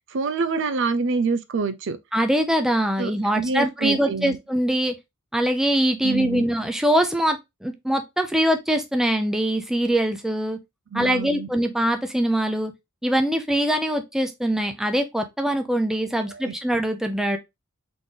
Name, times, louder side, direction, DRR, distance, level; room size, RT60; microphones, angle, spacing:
voice 1, 0.1-2.0 3.0-4.4 6.0-6.5 10.9-11.5 16.3-16.5, right 4 dB, 65° right, 0.5 m, -26 dB
voice 2, 2.1-4.9 5.3-10.6 10.9-12.7 13.0-17.4, right 1 dB, ahead, 0.6 m, -23 dB
4.0 x 3.2 x 3.7 m
head